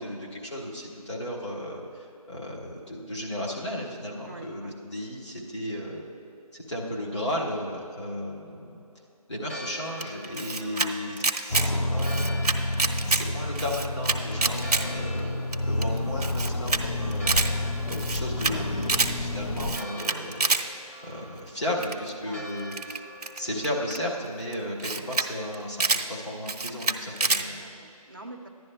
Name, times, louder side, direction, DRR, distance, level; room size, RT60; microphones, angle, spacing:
voice 1, 0.0-6.1 6.5-8.8 9.3-12.5 13.1-17.4 17.9-20.6 21.0-23.1 23.4-27.6, left 1 dB, 45° left, -3 dB, 1.8 m, -34 dB
voice 2, 4.3-4.7 10.6-10.9 22.2-22.5 27.3-28.5, right 2 dB, 35° right, 1 dB, 0.6 m, -45 dB
Church bell, 9.3-26.0, equal, 25° left, 0.7 m, -46 dB
Camera, 10.0-10.9 11.2-11.7 12.0-13.2 13.6-14.8 15.2-15.3 15.5-15.6 15.8-15.9 16.2-16.8 17.1-17.5 17.9-18.5 18.8-19.1 19.6-20.6 21.8-22.1 22.7-24.0 24.5-24.6 24.8-25.3 25.5-26.0 26.5-27.4, right 4 dB, 80° right, 0.7 m, -26 dB
sound 1, 11.5-19.8, left 1 dB, 70° left, 0.7 m, -29 dB
14.5 x 10.5 x 2.2 m, 2.7 s
figure-of-eight pair, 175°, 20 cm